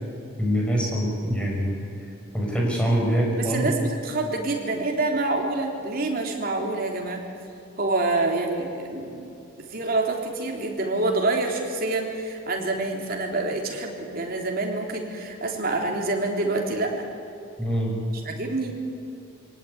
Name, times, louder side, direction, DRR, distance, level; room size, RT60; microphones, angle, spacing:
voice 1, 0.4-1.8 2.3-3.7 17.6-17.9, equal, 5° left, -2 dB, 6.0 m, -24 dB
voice 2, 3.4-7.2 7.8-9.2 9.7-17.0 18.3-18.7, right 2 dB, 45° right, 1 dB, 3.6 m, -27 dB
24.5 x 18.0 x 9.6 m, 2.6 s
head